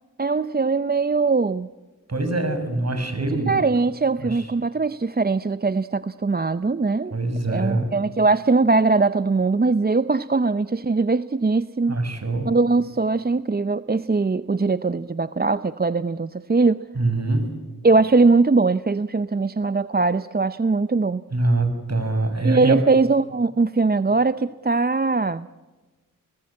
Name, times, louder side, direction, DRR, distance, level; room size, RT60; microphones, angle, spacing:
voice 1, 0.2-1.7 3.5-7.1 7.5-12.0 12.4-16.8 17.8-21.2 22.4-25.5, right 3 dB, 30° right, 13 dB, 0.7 m, -21 dB
voice 2, 2.1-3.5 4.2-4.5 7.1-7.9 11.9-12.5 17.0-17.5 21.3-22.8, right 2 dB, 50° right, 8 dB, 6.2 m, -24 dB
29.0 x 19.5 x 8.6 m, 1.2 s
cardioid pair, 45°, 33 cm